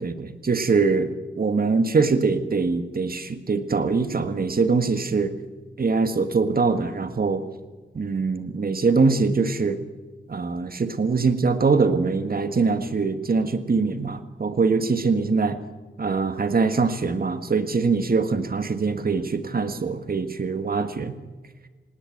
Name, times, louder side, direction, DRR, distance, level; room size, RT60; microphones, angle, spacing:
voice 1, 0.0-5.3 5.8-7.4 7.9-9.8 10.3-15.6 16.0-21.2, right 4 dB, 50° right, 9 dB, 1.6 m, -23 dB
19.0 x 18.5 x 7.8 m, 1.3 s
wide cardioid pair, 110°, 20 cm